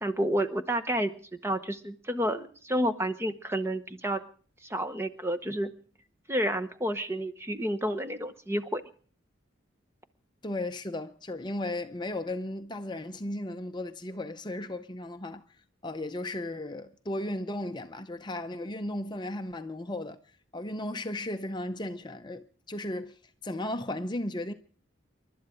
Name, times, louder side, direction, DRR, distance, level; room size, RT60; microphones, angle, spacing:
voice 1, 0.0-4.2 4.6-5.7 6.3-8.8, right 1 dB, 15° right, 0.9 m, -30 dB
voice 2, 10.4-15.4 15.8-20.2 20.5-24.5, left 1 dB, 20° left, 0.6 m, -35 dB
28.5 x 12.0 x 3.7 m
head